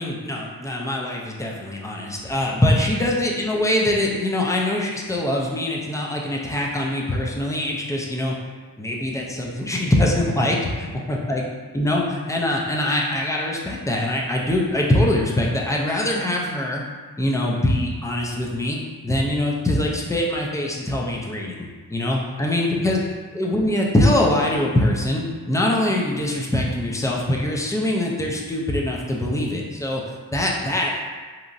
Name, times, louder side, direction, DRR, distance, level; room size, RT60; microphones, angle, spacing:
voice 1, 0.0-8.3 8.8-11.4 11.7-16.8 17.2-18.8 19.0-21.6 21.9-23.0 23.3-30.0 30.3-31.0, left 1 dB, 10° left, -2 dB, 0.3 m, -23 dB
2.9 x 2.5 x 2.5 m, 1.4 s
wide cardioid pair, 105°, 37 cm